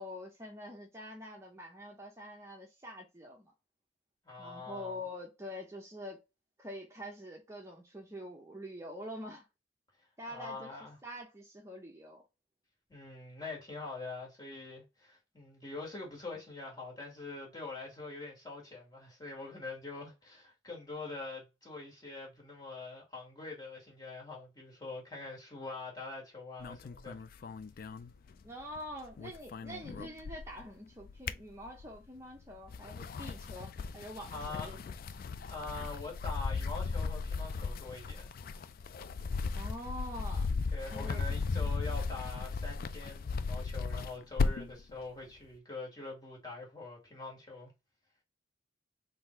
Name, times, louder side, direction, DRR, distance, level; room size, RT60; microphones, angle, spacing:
voice 1, 0.0-3.5 4.4-6.2 6.6-9.4 10.2-10.7 11.0-12.2 28.4-34.8 39.5-40.5 40.9-41.2, left 1 dB, 15° right, 0.7 m, -45 dB
voice 2, 4.3-5.0 10.3-11.0 12.9-27.2 34.3-34.7 35.5-38.3 40.7-47.7, left 3 dB, 20° left, 1.9 m, -44 dB
sound 1, 26.6-28.8 29.0-30.6 31.0-32.1 32.6-44.8, left 4 dB, 50° left, 0.3 m, -36 dB
3.8 x 2.7 x 4.4 m
head